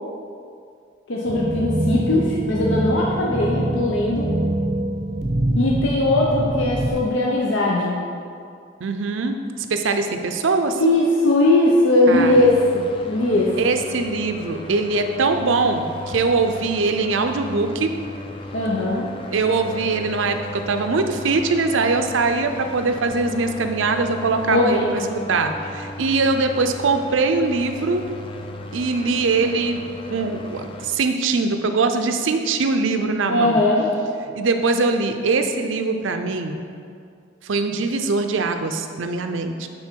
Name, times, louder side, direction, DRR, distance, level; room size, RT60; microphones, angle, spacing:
voice 1, 1.1-4.3 5.6-8.0 10.8-13.5 18.5-19.1 24.5-25.1 33.3-33.9, left 1 dB, 80° left, -3 dB, 0.7 m, -19 dB
sound 1, 1.3-6.9, right 1 dB, 35° right, 0.6 m, -24 dB
voice 2, 8.8-10.8 12.1-12.5 13.6-17.9 19.3-25.0 25.3-28.0 28.7-33.6 34.3-36.6 37.4-39.7, right 3 dB, 85° right, 7 dB, 0.5 m, -22 dB
sound 2, 12.1-30.9, left 1 dB, 25° left, 0.4 m, -36 dB
9.7 x 3.9 x 4.5 m, 2.4 s
head